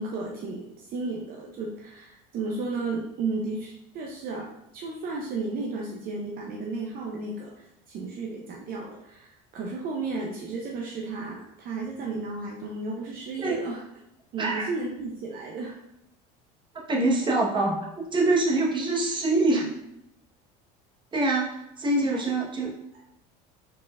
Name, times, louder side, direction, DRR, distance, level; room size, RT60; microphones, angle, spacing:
voice 1, 0.0-13.8 14.3-15.7 22.1-22.2, right 3 dB, 50° right, -1 dB, 0.7 m, -33 dB
voice 2, 14.4-14.7 16.9-17.8 18.1-19.7 21.1-22.7, right 2 dB, 25° right, -3 dB, 1.1 m, -24 dB
4.3 x 4.2 x 2.4 m, 0.83 s
supercardioid pair, 105°, 19 cm